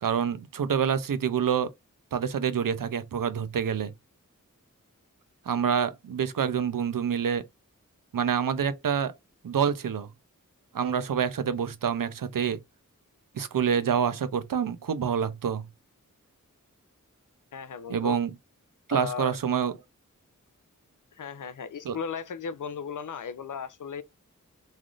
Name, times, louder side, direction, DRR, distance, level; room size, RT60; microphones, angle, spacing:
voice 1, 0.0-1.7 2.1-3.9 5.5-7.5 8.1-9.1 9.4-10.1 10.7-12.6 13.3-15.7 17.9-18.3 18.9-19.8 21.8-22.0, right 7 dB, 85° right, 0.5 m, -27 dB
voice 2, 17.5-18.2 18.9-19.4 21.2-24.0, left 6 dB, 70° left, 0.5 m, -36 dB
3.3 x 2.5 x 2.3 m
wide cardioid pair, 50°, 32 cm